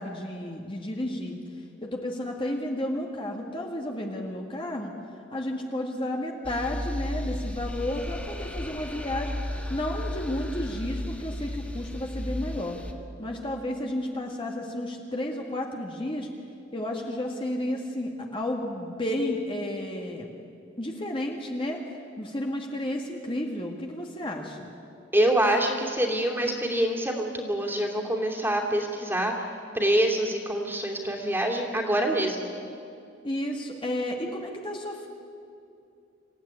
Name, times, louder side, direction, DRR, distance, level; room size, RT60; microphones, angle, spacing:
voice 1, 0.0-1.4 1.8-4.9 5.3-9.3 9.7-12.8 13.2-16.3 16.7-20.3 20.8-21.8 22.2-24.7 33.2-35.1, left 1 dB, 30° left, 0 dB, 1.9 m, -32 dB
sound 1, 6.4-12.9, left 1 dB, 5° left, 1.5 m, -34 dB
voice 2, 25.1-29.3 29.7-32.5, right 1 dB, 10° right, 1 dB, 2.9 m, -25 dB
27.0 x 16.0 x 9.7 m, 2.6 s
head